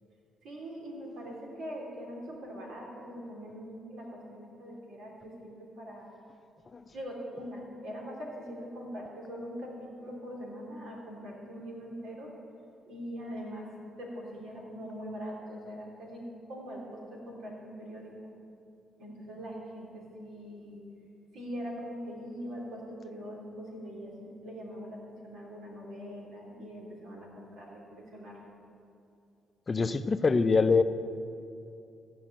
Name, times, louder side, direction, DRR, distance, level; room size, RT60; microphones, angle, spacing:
voice 1, 0.4-6.1 6.9-12.3 12.9-18.1 19.0-20.9 21.3-28.5, equal, 85° right, -2 dB, 3.3 m, -42 dB
voice 2, 29.7-30.8, left 4 dB, 35° left, 11 dB, 0.5 m, -24 dB
15.5 x 5.5 x 8.8 m, 2.6 s
cardioid pair, 90°, 0 cm